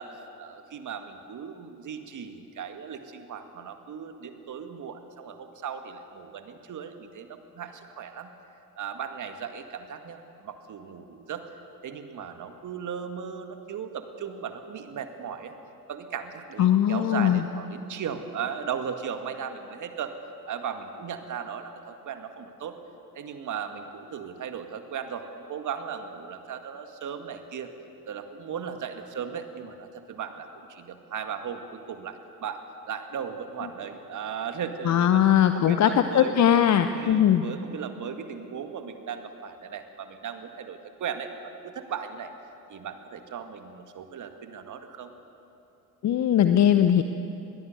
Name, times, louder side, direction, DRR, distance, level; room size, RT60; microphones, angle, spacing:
voice 1, 0.0-8.3 8.8-11.4 11.8-15.5 15.9-20.1 20.5-22.8 23.2-27.7 28.1-32.6 32.9-35.2 35.5-36.4 36.9-42.3 42.7-45.1, right 7 dB, 40° right, 7 dB, 2.1 m, -37 dB
voice 2, 16.6-17.4 34.9-37.5 46.0-47.0, left 10 dB, 40° left, 9 dB, 0.9 m, -20 dB
21.5 x 18.0 x 8.0 m, 2.8 s
figure-of-eight pair, 60°, 45 cm